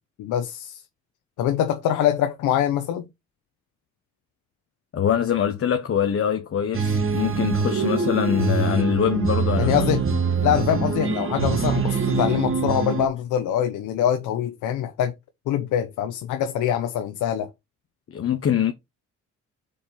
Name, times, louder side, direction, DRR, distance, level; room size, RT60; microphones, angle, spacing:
voice 1, 0.2-0.8 1.4-3.1 9.6-10.0 10.4-15.1 15.5-17.5, left 10 dB, 90° left, 0.9 m, -24 dB
voice 2, 4.9-9.7 10.1-10.2 18.1-18.7, left 9 dB, 45° left, 1.0 m, -23 dB
sound 1, 6.7-13.1, right 5 dB, 45° right, 1.7 m, -24 dB
5.0 x 4.4 x 5.5 m
cardioid pair, 90°, 30 cm